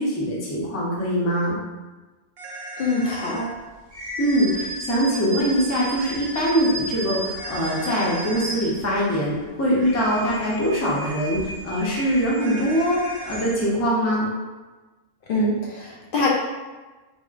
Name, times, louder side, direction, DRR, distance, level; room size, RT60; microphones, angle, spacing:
voice 1, 0.0-1.6 4.2-14.3, equal, 20° left, -5 dB, 0.5 m, -23 dB
sound 1, 2.4-3.5 7.4-8.5 12.4-13.5, right 1 dB, 80° right, 0.8 m, -37 dB
voice 2, 2.8-3.5 15.3-16.3, left 2 dB, 65° left, -3 dB, 0.7 m, -24 dB
sound 2, 3.9-9.2 9.6-13.9, right 1 dB, 40° right, 0.9 m, -35 dB
4.2 x 2.1 x 2.4 m, 1.2 s
omnidirectional pair, 1.0 m